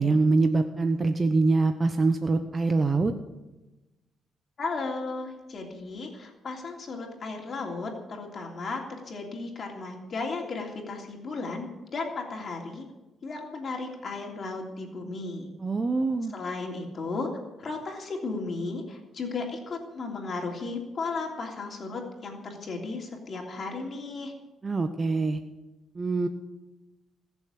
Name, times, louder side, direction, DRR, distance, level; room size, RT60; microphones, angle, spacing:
voice 1, 0.0-3.1 15.6-16.3 24.6-25.4 26.0-26.3, right 3 dB, 30° right, 7 dB, 0.9 m, -24 dB
voice 2, 4.6-12.8 13.2-15.5 16.3-17.3 17.6-24.3, left 3 dB, 45° left, 1 dB, 3.2 m, -35 dB
20.5 x 7.2 x 8.6 m, 1.1 s
cardioid pair, 90°, 0 cm